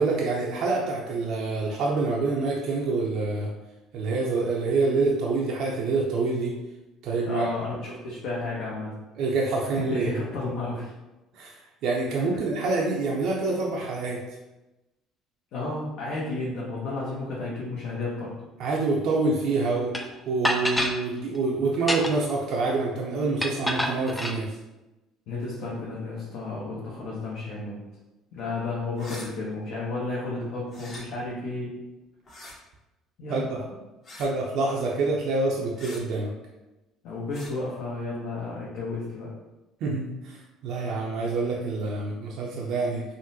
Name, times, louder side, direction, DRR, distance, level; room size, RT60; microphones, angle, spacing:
voice 1, 0.0-3.5 3.9-6.6 7.0-7.5 9.2-10.2 11.3-11.6 11.8-14.2 18.6-20.0 20.3-24.6 33.3-33.4 33.7-33.8 34.2-36.3 39.8-43.0, right 3 dB, 65° right, -3 dB, 0.5 m, -26 dB
voice 2, 7.3-8.9 9.8-10.9 15.5-18.3 25.3-27.8 28.3-31.8 33.2-33.6 37.0-39.3, left 3 dB, 70° left, -6 dB, 0.8 m, -32 dB
sound 1, 19.9-20.0 20.4-21.0 21.7-22.3 23.4-24.4, left 1 dB, 10° left, 0.4 m, -27 dB
sound 2, 28.9-29.3 30.7-31.0 32.3-32.6 34.0-34.3 35.8-36.0 37.3-37.5, left 2 dB, 45° left, 1.0 m, -43 dB
3.7 x 2.1 x 2.7 m, 1.0 s
supercardioid pair, 75°, 0 cm